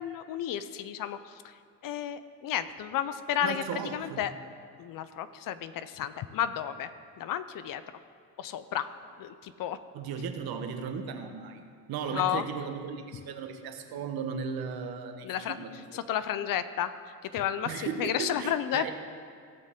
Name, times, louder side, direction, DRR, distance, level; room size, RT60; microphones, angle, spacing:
voice 1, 0.0-1.5 1.8-3.6 3.9-4.3 4.8-6.9 7.2-7.8 8.4-8.9 9.2-9.8 12.1-12.4 15.2-15.6 15.9-16.9 17.3-18.9, left 10 dB, 60° left, 12 dB, 0.7 m, -32 dB
voice 2, 3.4-4.3 9.9-16.0 17.7-18.9, right 6 dB, 70° right, 6 dB, 1.2 m, -36 dB
17.0 x 6.5 x 3.7 m, 2.2 s
supercardioid pair, 80°, 38 cm